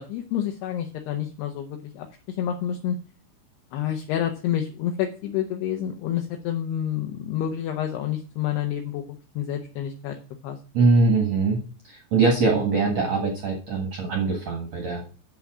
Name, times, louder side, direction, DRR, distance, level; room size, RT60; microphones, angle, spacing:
voice 1, 0.0-3.0 3.7-9.0 9.4-10.2 10.4-10.6, left 10 dB, 75° left, 3 dB, 2.5 m, -28 dB
voice 2, 10.7-11.6 11.9-15.0, right 3 dB, 55° right, 1 dB, 1.9 m, -22 dB
8.8 x 7.0 x 6.1 m, 0.37 s
omnidirectional pair, 5.6 m